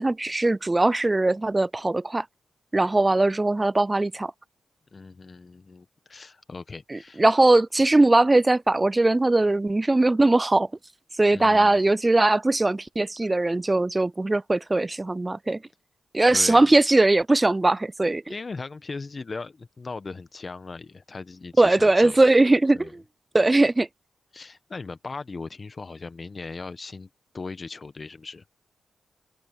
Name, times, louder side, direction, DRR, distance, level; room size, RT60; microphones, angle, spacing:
voice 1, 0.0-2.3 2.7-4.3 6.9-10.7 11.2-15.6 16.1-18.3 21.6-23.0 23.3-23.9, right 2 dB, 25° right, 0.4 m, -20 dB
voice 2, 4.9-7.2 11.3-11.9 13.2-13.3 16.3-16.7 18.3-22.2 22.7-22.9 24.3-27.1 27.3-28.4, left 4 dB, 45° left, 1.2 m, -38 dB
cardioid pair, 60°, 0 cm